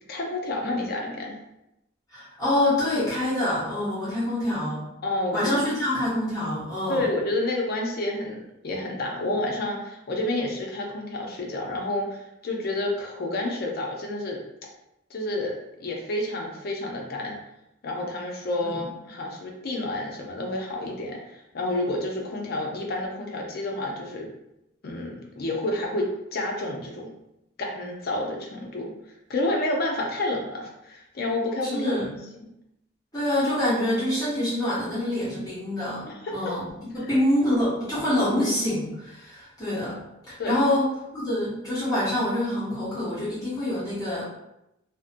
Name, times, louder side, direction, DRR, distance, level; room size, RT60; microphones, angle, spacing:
voice 1, 0.1-1.4 5.0-5.6 6.9-14.4 15.1-15.5 15.8-17.4 17.8-24.3 24.8-27.1 27.6-28.9 29.3-32.0 36.1-36.3 37.0-37.1 40.4-40.6, left 1 dB, 45° left, 0 dB, 0.4 m, -29 dB
voice 2, 2.1-4.8 5.3-7.1 18.6-18.8 31.6-32.1 33.1-40.0 40.3-40.9 41.1-44.2, left 1 dB, 15° left, -10 dB, 0.7 m, -26 dB
2.5 x 2.1 x 2.5 m, 0.87 s
head